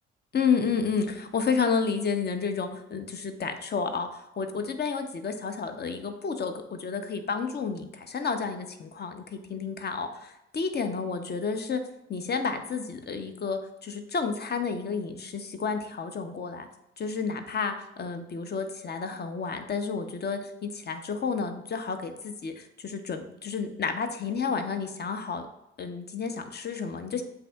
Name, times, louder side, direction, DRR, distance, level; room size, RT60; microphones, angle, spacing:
voice 1, 0.3-11.8 12.1-16.7 17.0-25.4 25.8-27.2, left 5 dB, 30° left, 7 dB, 0.6 m, -31 dB
7.4 x 2.7 x 2.2 m, 0.86 s
figure-of-eight pair, 40°, 32 cm